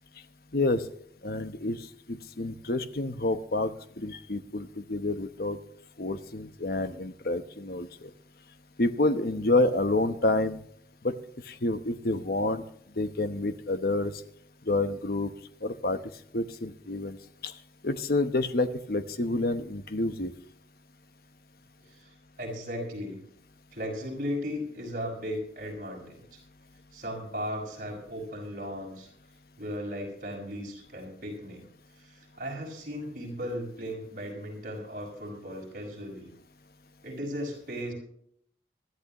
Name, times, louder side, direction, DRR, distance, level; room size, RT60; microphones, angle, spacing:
voice 1, 0.5-0.8 1.2-3.7 4.0-5.6 6.0-8.1 8.8-10.6 11.0-11.1 11.5-12.6 13.0-14.1 14.7-15.3 15.6-16.0 16.3-17.2 17.4-17.5 17.8-20.3, left 2 dB, 55° left, 10 dB, 1.0 m, -28 dB
voice 2, 21.8-23.2 23.7-26.4 26.9-29.1 29.6-31.6 31.9-36.3 37.0-37.9, equal, 50° right, 0 dB, 5.9 m, -36 dB
21.0 x 13.5 x 3.0 m, 0.69 s
head